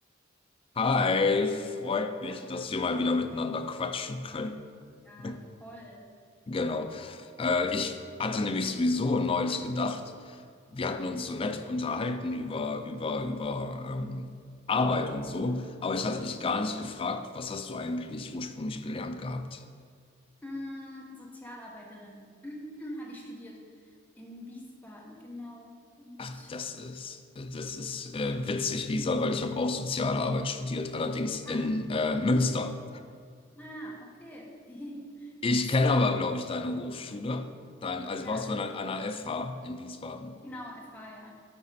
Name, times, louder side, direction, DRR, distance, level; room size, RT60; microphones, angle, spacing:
voice 1, 0.8-4.6 5.2-5.4 6.5-10.4 10.7-14.3 14.7-19.6 26.2-32.8 35.4-37.5 37.8-40.4, left 3 dB, 30° left, 8 dB, 0.4 m, -30 dB
voice 2, 2.3-2.9 5.0-6.1 20.4-26.5 31.5-31.6 33.5-35.3 38.2-38.4 40.4-41.3, equal, 10° left, -2 dB, 0.9 m, -44 dB
8.8 x 4.2 x 4.2 m, 2.1 s
head